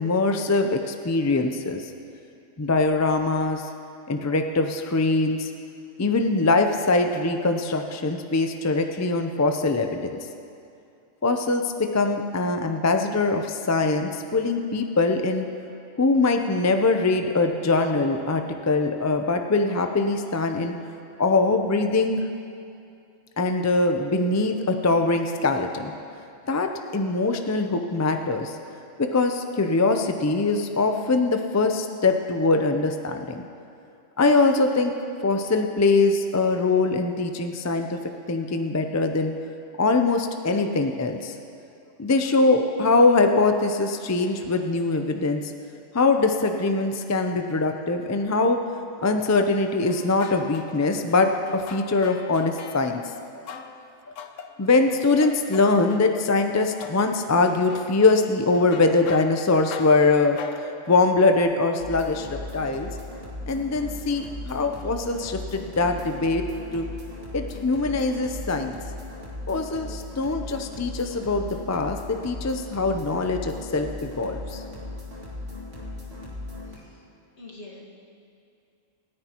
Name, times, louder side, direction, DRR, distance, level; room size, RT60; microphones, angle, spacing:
voice 1, 0.0-1.8 2.6-3.7 4.1-5.5 6.0-10.1 11.2-15.5 16.0-20.7 21.2-22.2 23.4-25.9 26.5-28.6 29.0-33.4 34.2-34.9 35.2-39.3 39.8-41.4 42.0-45.5 45.9-48.6 49.0-53.6 54.6-60.4 60.9-62.9 63.5-66.4 66.7-66.9 67.3-68.8 69.5-74.6, left 3 dB, 25° left, 5 dB, 0.3 m, -22 dB
sound 1, 49.9-53.0 53.5-56.3 56.8-61.4, left 7 dB, 80° left, 1.1 m, -42 dB
sound 2, 61.8-76.8, left 2 dB, 50° right, 2.5 m, -37 dB
voice 2, 77.4-77.8, left 2 dB, 60° left, -2 dB, 2.0 m, -44 dB
26.5 x 9.6 x 3.0 m, 2.5 s
omnidirectional pair, 1.3 m